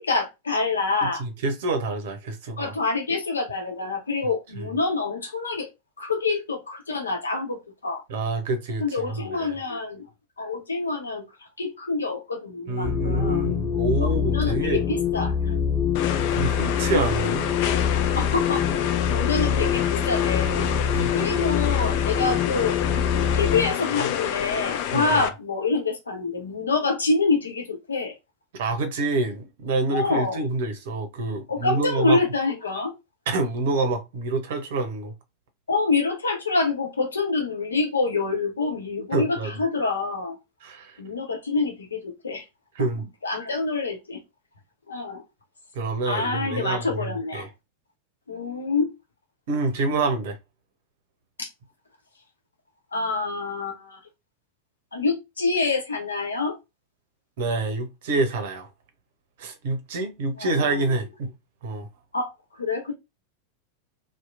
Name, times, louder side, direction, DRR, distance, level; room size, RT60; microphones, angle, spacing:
voice 1, 0.0-1.2 2.6-5.7 6.0-8.0 8.8-10.1 10.4-11.3 11.6-13.5 14.0-15.5 16.9-17.0 18.2-20.7 21.1-22.8 23.3-28.1 29.9-30.4 31.5-32.9 35.7-40.4 41.0-42.4 42.8-42.9 43.2-44.2 44.9-45.2 46.1-47.5 48.3-48.9 51.4-51.5 52.9-54.0 54.9-56.6 60.4-60.9 62.1-62.3 62.6-62.9, left 3 dB, 75° left, 0.7 m, -26 dB
voice 2, 1.0-2.7 4.6-4.7 8.1-9.5 12.7-14.8 16.3-17.4 20.9-21.2 24.9-25.2 28.5-32.2 33.3-35.1 39.1-39.5 40.6-41.0 42.8-43.0 45.7-47.5 49.5-50.4 57.4-58.7 59.4-61.3 61.6-61.9, right 3 dB, 55° right, 0.7 m, -27 dB
sound 1, 12.8-23.7, left 8 dB, 20° left, 1.2 m, -25 dB
sound 2, 15.9-25.3, left 10 dB, 45° left, 0.3 m, -29 dB
2.8 x 2.1 x 2.4 m
figure-of-eight pair, 90°, 0 cm